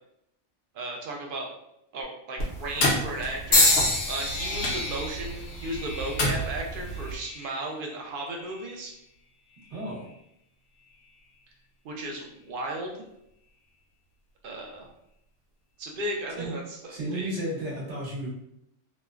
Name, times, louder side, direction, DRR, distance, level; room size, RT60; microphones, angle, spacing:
voice 1, 0.7-1.5 1.9-3.7 4.1-8.9 11.8-13.0 14.4-14.9 15.8-17.3, right 1 dB, 55° right, 1 dB, 0.7 m, -35 dB
sound 1, 2.4-7.2, equal, 65° left, 0.9 m, -31 dB
sound 2, 3.5-7.6 8.4-8.8 9.7-9.9, left 2 dB, 90° left, 1.1 m, -27 dB
voice 2, 9.7-10.1 16.4-16.5 16.9-18.3, right 1 dB, 75° right, -5 dB, 1.3 m, -33 dB
3.0 x 2.0 x 2.3 m, 0.78 s
omnidirectional pair, 1.2 m